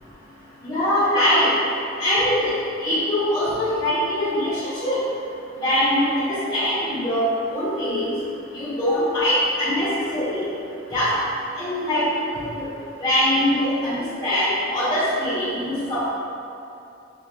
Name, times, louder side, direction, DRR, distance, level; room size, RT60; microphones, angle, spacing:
voice 1, 0.6-1.5 2.0-2.5 2.8-5.0 5.6-8.0 8.5-10.5 10.9-11.1 11.6-12.1 12.4-12.6 13.0-16.1, left 1 dB, 25° left, -15 dB, 1.3 m, -22 dB
5.8 x 2.8 x 2.4 m, 2.7 s
head